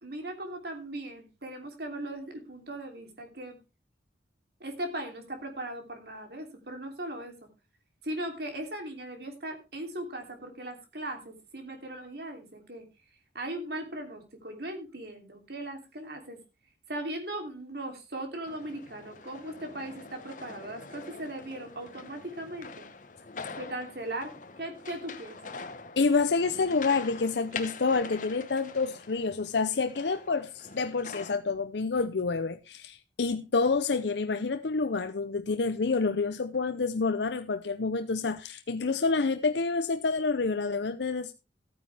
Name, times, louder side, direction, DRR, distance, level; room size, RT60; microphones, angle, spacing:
voice 1, 0.0-3.6 4.6-7.3 8.0-12.9 13.3-16.4 16.9-22.9 23.5-25.6, right 1 dB, 60° right, 3.0 m, -38 dB
sound 1, 18.5-31.4, left 4 dB, 45° left, 1.1 m, -44 dB
voice 2, 26.0-41.3, left 4 dB, 75° left, 0.6 m, -28 dB
14.5 x 9.5 x 3.4 m
head